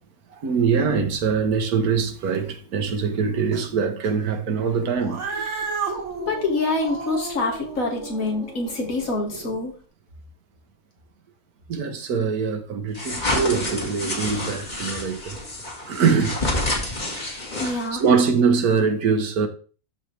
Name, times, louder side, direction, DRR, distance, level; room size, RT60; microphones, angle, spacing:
voice 1, 0.3-5.4 11.7-15.4 15.9-16.4 17.6-19.5, right 5 dB, 80° right, 1.5 m, -23 dB
Cat, 5.0-9.6, right 4 dB, 55° right, 1.6 m, -33 dB
voice 2, 6.2-9.7 17.6-18.0, left 3 dB, 65° left, 2.3 m, -26 dB
sound 1, 12.9-18.1, left 2 dB, 30° left, 1.8 m, -28 dB
12.5 x 4.4 x 3.3 m
omnidirectional pair, 1.6 m